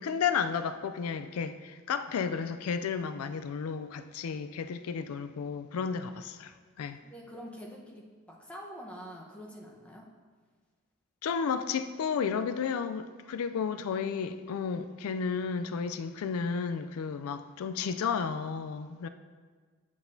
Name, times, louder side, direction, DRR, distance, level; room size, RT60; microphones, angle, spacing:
voice 1, 0.0-7.0 11.2-19.1, left 6 dB, 90° left, 11 dB, 0.4 m, -32 dB
voice 2, 7.0-10.1, equal, 5° left, -2 dB, 1.0 m, -46 dB
8.4 x 8.0 x 2.7 m, 1.5 s
head